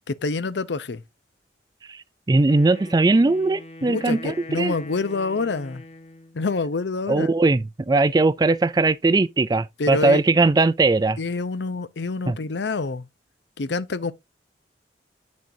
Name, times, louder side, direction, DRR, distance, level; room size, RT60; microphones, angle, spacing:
voice 1, 0.1-1.0 3.8-5.8 6.3-7.3 9.8-10.2 11.2-13.1 13.6-14.1, left 3 dB, 80° left, 0.6 m, -27 dB
voice 2, 1.9-4.7 7.1-11.2 12.3-12.4, right 3 dB, 20° right, 0.3 m, -20 dB
Wind instrument woodwind instrument, 2.4-6.4, left 2 dB, 35° left, 1.2 m, -42 dB
8.6 x 6.3 x 2.7 m
head